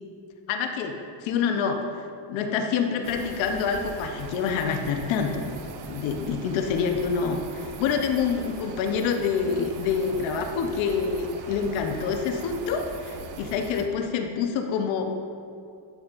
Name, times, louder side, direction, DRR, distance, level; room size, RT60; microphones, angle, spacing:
voice 1, 0.5-1.8 2.3-5.5 5.9-15.0, left 6 dB, 75° left, 4 dB, 0.9 m, -27 dB
sound 1, 3.0-13.9, right 5 dB, 80° right, 0.9 m, -40 dB
9.2 x 7.1 x 2.5 m, 2.4 s
cardioid pair, 125°, 46 cm